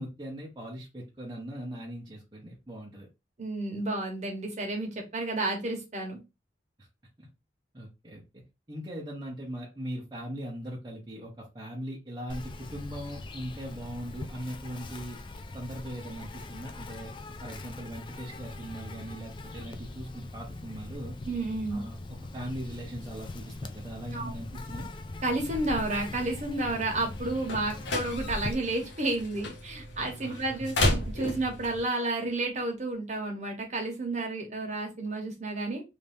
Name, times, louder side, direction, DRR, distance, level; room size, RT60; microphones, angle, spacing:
voice 1, 0.0-3.1 7.2-7.3 7.7-8.4 8.7-15.2 15.5-21.1 21.7-22.0 22.3-24.9 30.2-30.6, equal, 20° right, -4 dB, 0.9 m, -40 dB
voice 2, 3.4-6.2 21.2-21.8 24.1-24.3 25.2-35.8, right 2 dB, 40° right, 1 dB, 1.1 m, -31 dB
Insect, 12.3-28.5, left 2 dB, 25° left, 0.3 m, -41 dB
sound 1, 26.9-31.8, left 1 dB, 80° left, 1.0 m, -33 dB
3.3 x 2.7 x 3.4 m, 0.26 s
head